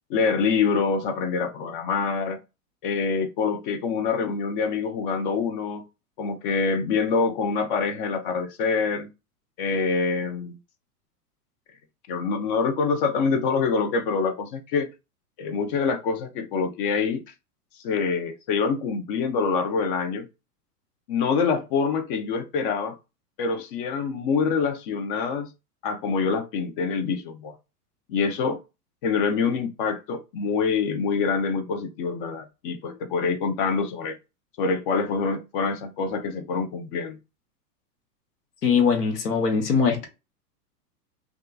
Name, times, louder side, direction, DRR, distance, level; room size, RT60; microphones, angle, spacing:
voice 1, 0.1-2.4 2.8-5.8 6.2-9.1 9.6-10.6 12.1-14.9 15.4-17.2 17.8-20.3 21.1-23.0 23.4-25.5 25.8-27.6 28.1-28.6 29.0-34.2 34.6-37.2, left 5 dB, 35° left, 0.4 m, -25 dB
voice 2, 38.6-40.1, left 6 dB, 80° left, 1.0 m, -21 dB
2.7 x 2.4 x 2.2 m
hypercardioid pair, 110°, 47 cm